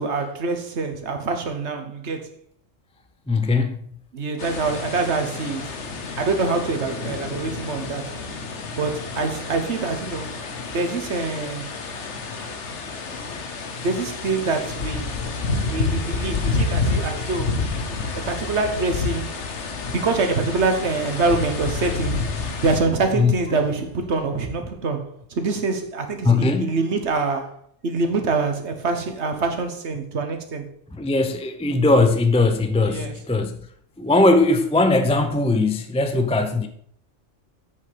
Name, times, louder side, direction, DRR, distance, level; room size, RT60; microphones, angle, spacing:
voice 1, 0.0-2.3 4.1-5.7 6.2-8.1 8.8-10.4 10.7-11.7 13.8-15.1 15.7-17.6 18.1-19.4 19.9-22.3 22.6-30.7 32.8-33.1, right 3 dB, 60° right, 1.6 m, -25 dB
voice 2, 3.3-3.8 23.1-23.3 26.2-26.7 30.9-33.6 34.0-36.7, left 2 dB, 10° left, 0.4 m, -19 dB
sound 1, 4.4-22.8, left 3 dB, 65° left, 1.4 m, -29 dB
8.0 x 6.9 x 5.1 m
omnidirectional pair, 1.3 m